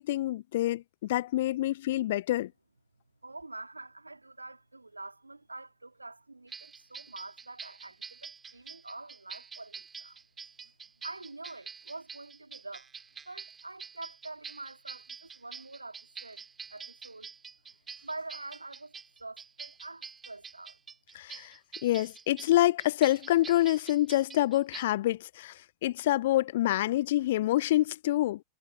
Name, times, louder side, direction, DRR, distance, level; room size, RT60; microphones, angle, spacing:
voice 1, 0.0-2.5 21.1-21.5 21.8-28.4, left 15 dB, 55° left, 0.9 m, -27 dB
voice 2, 3.2-10.2 11.0-12.9 13.2-16.4 16.7-17.3 18.0-20.8, right 2 dB, 80° right, 2.6 m, -45 dB
sound 1, 6.5-24.8, right 5 dB, 15° right, 3.7 m, -47 dB
figure-of-eight pair, 90°, 0 cm